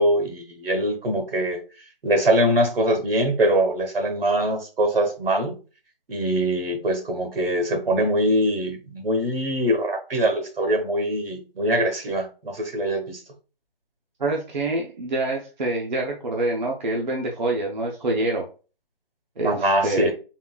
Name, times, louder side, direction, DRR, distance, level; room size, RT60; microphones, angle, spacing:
voice 1, 0.0-1.6 2.0-5.6 6.1-13.2 19.4-20.1, right 1 dB, 75° right, 1.0 m, -23 dB
voice 2, 14.2-18.5 19.4-20.1, right 2 dB, 50° right, 0.6 m, -26 dB
3.7 x 2.4 x 2.2 m
hypercardioid pair, 175°, 29 cm